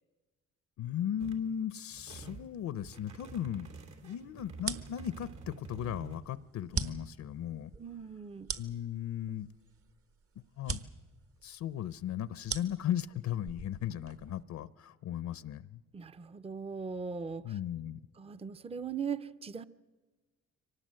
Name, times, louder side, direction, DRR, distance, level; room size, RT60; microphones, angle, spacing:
voice 1, 0.8-3.7 4.0-7.7 8.6-9.5 10.6-10.8 11.4-15.8 17.4-18.0, left 10 dB, 65° left, 0.7 m, -36 dB
sound 1, 1.2-1.5 1.9-2.5 2.8-6.2, right 4 dB, 70° right, 2.9 m, -48 dB
sound 2, 4.5-14.4, right 5 dB, 50° right, 1.3 m, -42 dB
voice 2, 7.8-8.5 15.9-17.6 18.2-19.6, right 6 dB, 20° right, 0.6 m, -39 dB
24.0 x 19.0 x 7.6 m
cardioid pair, 90°, 30 cm